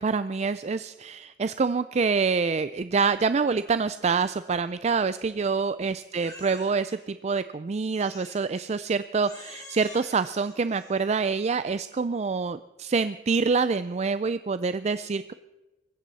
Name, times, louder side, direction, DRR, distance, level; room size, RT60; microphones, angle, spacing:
voice 1, 0.0-15.3, right 4 dB, 40° right, 13 dB, 0.4 m, -26 dB
Crying sobbing, 6.2-7.0 7.9-8.7 9.2-11.3, left 2 dB, 20° left, 3.9 m, -47 dB
24.0 x 14.5 x 4.1 m, 1.1 s
head